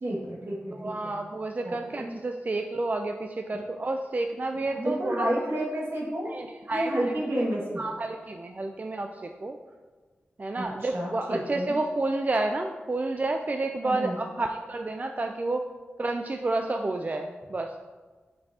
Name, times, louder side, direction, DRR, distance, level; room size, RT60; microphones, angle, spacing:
voice 1, 0.0-1.1 1.6-2.1 4.7-6.3 6.7-7.8 10.6-11.7 13.8-14.2, right 1 dB, 70° right, -4 dB, 1.8 m, -30 dB
voice 2, 0.8-5.3 6.3-7.2 7.8-9.6 10.4-15.6 16.0-17.7, right 2 dB, 40° right, 4 dB, 0.4 m, -30 dB
6.9 x 5.3 x 2.8 m, 1.4 s
cardioid pair, 45°, 4 cm